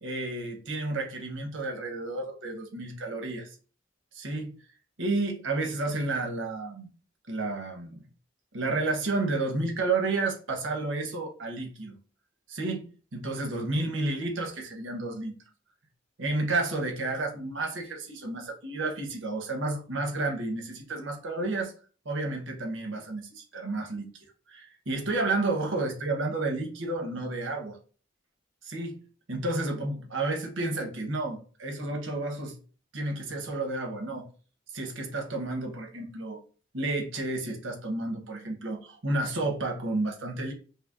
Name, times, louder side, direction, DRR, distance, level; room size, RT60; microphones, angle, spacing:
voice 1, 0.0-3.5 4.1-4.5 5.0-6.9 7.3-8.1 8.5-11.9 12.5-15.3 16.2-21.7 22.0-27.8 28.6-28.9 29.3-32.6 32.9-34.3 34.7-36.4 36.7-40.5, right 2 dB, 85° right, 2 dB, 1.0 m, -31 dB
5.5 x 2.1 x 2.5 m, 0.38 s
head